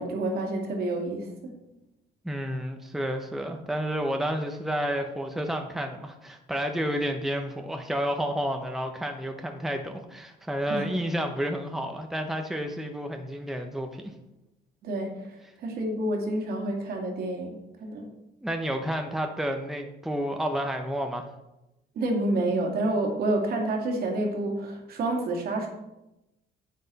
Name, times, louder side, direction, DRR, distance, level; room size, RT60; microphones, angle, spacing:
voice 1, 0.0-1.5 10.7-10.9 14.8-18.1 22.0-25.7, right 2 dB, 65° right, 1 dB, 2.3 m, -29 dB
voice 2, 2.2-14.1 18.4-21.3, equal, ahead, 4 dB, 0.8 m, -30 dB
9.4 x 7.8 x 4.1 m, 0.95 s
cardioid pair, 110°, 17 cm